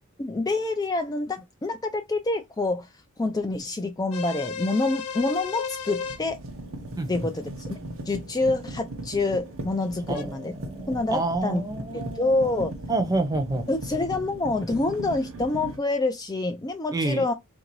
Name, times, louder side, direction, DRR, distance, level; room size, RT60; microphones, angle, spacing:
voice 1, 0.2-2.9 3.2-6.4 7.1-7.8 8.1-10.5 10.9-11.6 11.9-12.7 13.7-17.3, left 2 dB, 15° left, 0.3 m, -27 dB
sound 1, 4.1-6.2 10.1-10.2, left 6 dB, 90° left, 0.6 m, -33 dB
sound 2, 5.2-5.3 5.8-15.8, right 1 dB, 70° right, 1.0 m, -38 dB
voice 2, 10.1-12.6 12.9-13.7 16.9-17.2, right 2 dB, 15° right, 0.7 m, -28 dB
3.7 x 2.6 x 4.5 m
head